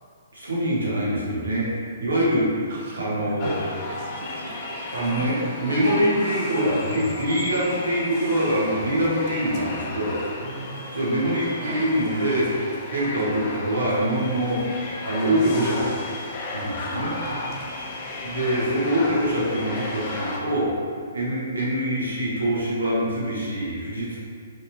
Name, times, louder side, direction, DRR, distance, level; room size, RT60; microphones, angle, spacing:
voice 1, 0.3-1.7 2.0-2.7 3.0-3.6 4.9-5.3 5.6-10.2 10.9-12.5 12.9-14.7 15.0-15.8 16.5-17.2 18.2-20.7 21.1-24.2, right 1 dB, 80° right, -6 dB, 1.2 m, -24 dB
voice 2, 2.7-5.5 10.4-10.9 11.5-11.9 17.2-17.5 18.5-18.9, right 2 dB, 55° right, -3 dB, 0.8 m, -40 dB
sound 1, 3.4-20.4, left 2 dB, 35° left, 0.6 m, -34 dB
4.0 x 3.2 x 2.8 m, 2.1 s
figure-of-eight pair, 125°, 0 cm